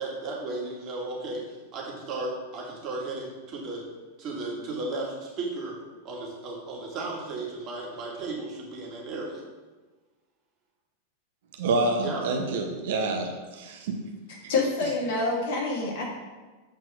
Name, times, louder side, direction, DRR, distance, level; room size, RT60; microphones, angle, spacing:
voice 1, 0.0-3.8 4.2-5.8 6.0-9.4 12.0-12.2 12.8-12.9, right 2 dB, 35° right, -3 dB, 2.2 m, -35 dB
voice 2, 11.6-14.0, right 3 dB, 55° right, 3 dB, 0.9 m, -27 dB
voice 3, 14.5-16.1, left 3 dB, 55° left, -2 dB, 2.1 m, -27 dB
7.8 x 4.5 x 5.1 m, 1.3 s
figure-of-eight pair, 90°, 0 cm